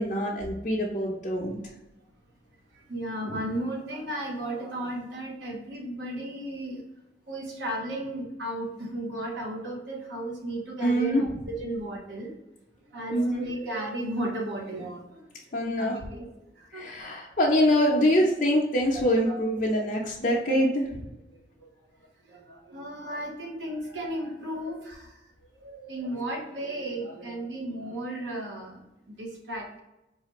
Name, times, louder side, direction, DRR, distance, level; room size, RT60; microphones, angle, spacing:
voice 1, 0.0-1.6 10.8-11.2 13.1-13.4 15.5-16.0 16.7-21.0, equal, 45° left, -5 dB, 0.6 m, -24 dB
voice 2, 2.7-6.9 7.3-12.3 12.9-15.3 15.6-16.3 16.6-17.1 19.2-19.4 19.8-19.9 21.6-21.7 22.3-25.2 25.5-29.8, right 1 dB, 85° right, 0 dB, 1.0 m, -35 dB
4.7 x 2.5 x 2.9 m, 0.95 s
head